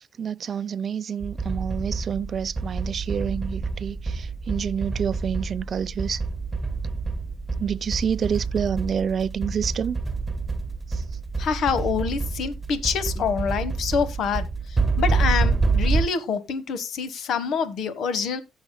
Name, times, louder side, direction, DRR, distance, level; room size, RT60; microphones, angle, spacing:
voice 1, 0.0-6.2 7.6-10.0, right 7 dB, 50° right, 0.5 m, -28 dB
sound 1, 1.2-16.1, right 4 dB, 15° right, 1.7 m, -27 dB
voice 2, 11.4-18.4, left 6 dB, 70° left, 1.3 m, -26 dB
17.0 x 6.4 x 2.2 m
cardioid pair, 90°, 0 cm